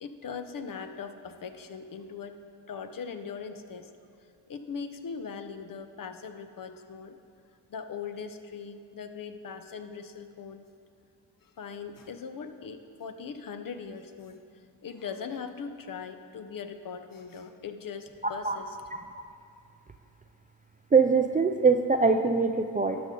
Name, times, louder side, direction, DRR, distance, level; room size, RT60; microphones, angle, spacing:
voice 1, 0.0-2.4 2.7-3.9 4.5-7.2 7.7-10.7 11.4-14.4 14.8-18.8, left 6 dB, 45° left, 9 dB, 0.7 m, -40 dB
voice 2, 20.9-23.0, right 4 dB, 20° right, 5 dB, 0.4 m, -23 dB
12.0 x 5.3 x 3.8 m, 2.5 s
supercardioid pair, 55°, 46 cm